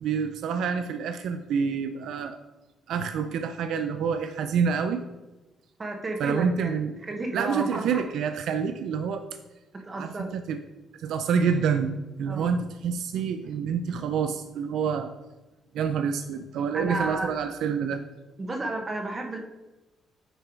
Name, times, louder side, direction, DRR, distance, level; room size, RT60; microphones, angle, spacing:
voice 1, 0.0-2.4 2.9-5.0 6.2-6.9 7.3-9.3 10.0-10.6 10.9-15.1 15.7-18.0, right 6 dB, 80° right, 8 dB, 0.4 m, -27 dB
voice 2, 5.8-8.0 9.8-10.3 12.2-12.6 16.7-17.3 18.4-19.4, right 2 dB, 30° right, 2 dB, 1.2 m, -32 dB
8.9 x 3.3 x 4.6 m, 1.1 s
cardioid pair, 90°, 0 cm